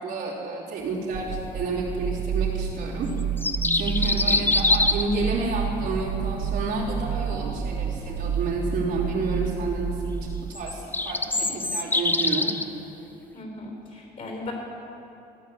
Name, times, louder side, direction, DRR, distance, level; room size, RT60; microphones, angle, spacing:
voice 1, 0.0-3.1 3.7-10.2 10.5-12.5, right 3 dB, 80° right, -6 dB, 3.2 m, -30 dB
sound 1, 1.1-10.5, right 7 dB, 50° right, 0.9 m, -30 dB
sound 2, 3.2-5.2 10.5-12.6, left 2 dB, 10° left, 0.5 m, -24 dB
voice 2, 4.0-4.4 13.3-14.5, left 2 dB, 50° left, 0 dB, 3.3 m, -37 dB
15.5 x 5.9 x 8.4 m, 2.9 s
cardioid pair, 110°, 17 cm